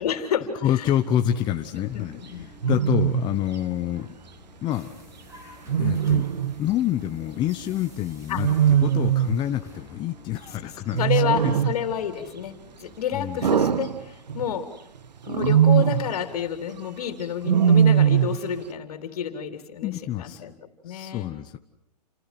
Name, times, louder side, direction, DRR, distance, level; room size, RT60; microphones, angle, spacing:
voice 1, 0.0-0.9 1.9-2.5 8.3-8.4 11.0-12.5 12.8-14.0 14.3-14.7 15.3-19.9 20.2-20.5 20.8-21.3, left 8 dB, 60° left, 6 dB, 3.5 m, -29 dB
voice 2, 0.6-4.1 4.6-4.9 5.8-6.3 6.6-11.6 13.1-13.8 19.8-20.4 20.9-21.6, left 12 dB, 20° left, 6 dB, 1.0 m, -27 dB
Wild animals, 1.0-1.4 2.6-3.3 5.7-6.6 8.4-9.4 10.9-11.9 13.4-14.5 15.3-16.1 17.4-18.5, right 8 dB, 85° right, 1.7 m, -21 dB
sound 1, 1.9-13.6, equal, 15° right, 7.3 m, -49 dB
30.0 x 27.0 x 6.0 m, 0.72 s
hypercardioid pair, 145°, 21 cm